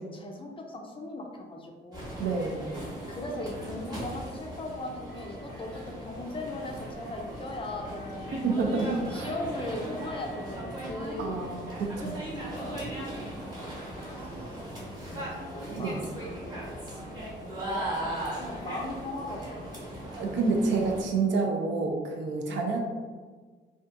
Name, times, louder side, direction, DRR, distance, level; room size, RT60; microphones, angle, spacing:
voice 1, 0.0-2.2 3.1-8.4 9.1-11.5 12.0-12.2 12.5-14.6 15.0-17.0 17.6-19.8 22.5-22.7, left 2 dB, 25° left, 1 dB, 0.4 m, -39 dB
sound 1, 1.9-21.0, right 1 dB, 20° right, 0.9 m, -38 dB
voice 2, 2.2-2.6 8.3-9.3 11.2-12.2 15.7-16.0 20.2-22.8, right 4 dB, 70° right, 1 dB, 0.5 m, -28 dB
2.5 x 2.3 x 2.5 m, 1.5 s
cardioid pair, 90°, 20 cm